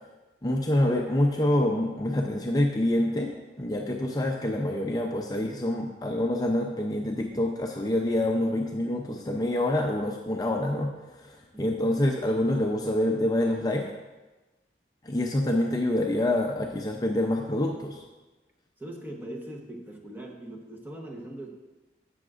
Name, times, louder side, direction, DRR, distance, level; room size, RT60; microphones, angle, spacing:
voice 1, 0.4-13.9 15.0-18.0, left 1 dB, 20° left, 1 dB, 0.5 m, -26 dB
voice 2, 11.5-12.0 18.8-21.5, right 1 dB, 10° right, 0 dB, 0.9 m, -41 dB
11.0 x 7.7 x 2.5 m, 1.1 s
head